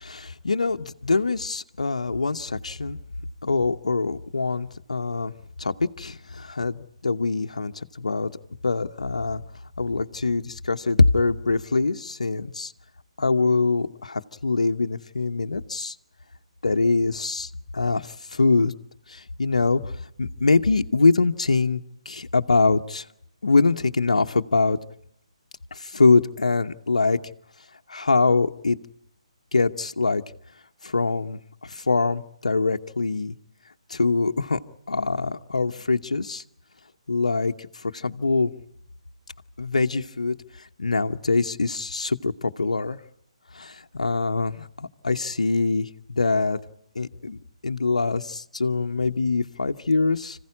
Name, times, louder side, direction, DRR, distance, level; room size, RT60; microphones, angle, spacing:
voice 1, 0.0-3.0 3.4-5.3 5.6-8.3 8.6-9.4 9.8-12.7 13.2-16.0 16.6-18.7 19.1-23.1 23.4-24.8 25.7-27.2 27.9-28.8 29.5-30.2 30.8-33.3 33.9-34.6 34.9-36.4 37.1-38.5 39.6-43.0 43.5-46.6 46.9-47.4 47.6-50.4, left 3 dB, 90° left, 6 dB, 1.0 m, -24 dB
26.0 x 15.5 x 9.9 m, 0.74 s
hypercardioid pair, 150°, 4 cm